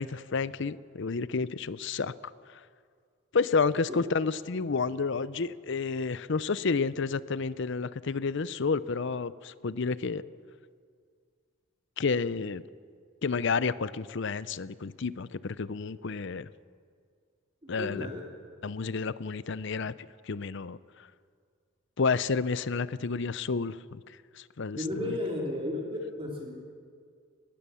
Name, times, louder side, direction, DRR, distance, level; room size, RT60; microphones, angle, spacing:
voice 1, 0.0-2.1 3.3-10.2 12.0-12.6 13.2-16.5 17.7-18.1 18.6-19.9 20.3-20.8 22.0-24.0 24.4-25.2, left 4 dB, 60° left, 17 dB, 0.6 m, -30 dB
voice 2, 17.6-18.2 24.8-26.6, left 1 dB, 25° right, -1 dB, 3.3 m, -34 dB
20.5 x 18.5 x 7.0 m, 2.1 s
head